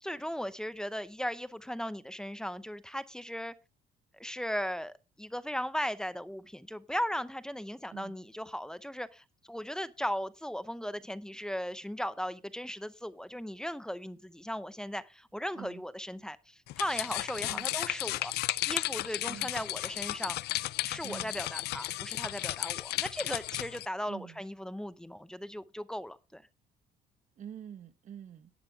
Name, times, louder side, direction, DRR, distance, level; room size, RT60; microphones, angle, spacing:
voice 1, 0.0-3.5 4.2-18.3 18.6-20.4 20.9-26.4, equal, 5° left, 0.6 m, -37 dB
sound 1, 16.7-23.8, left 17 dB, 75° left, 0.4 m, -34 dB
voice 2, 21.0-21.3 24.1-24.4 27.4-28.5, right 9 dB, 50° right, 1.1 m, -46 dB
11.5 x 8.7 x 3.6 m
cardioid pair, 110°, 17 cm